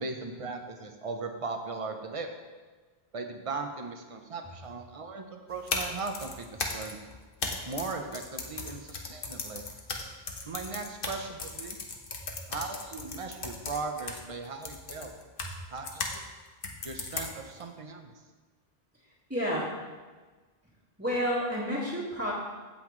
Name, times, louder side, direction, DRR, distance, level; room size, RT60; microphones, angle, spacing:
voice 1, 0.0-2.3 3.1-7.1 7.6-9.7 10.4-11.8 12.5-15.2 15.7-16.0 16.8-18.1, right 4 dB, 35° right, 5 dB, 0.8 m, -38 dB
sound 1, 5.5-16.2 16.6-17.6, left 3 dB, 60° left, 1.2 m, -37 dB
voice 2, 19.3-19.7 21.0-22.3, equal, 10° right, -9 dB, 1.7 m, -30 dB
16.0 x 5.7 x 3.2 m, 1.3 s
omnidirectional pair, 1.1 m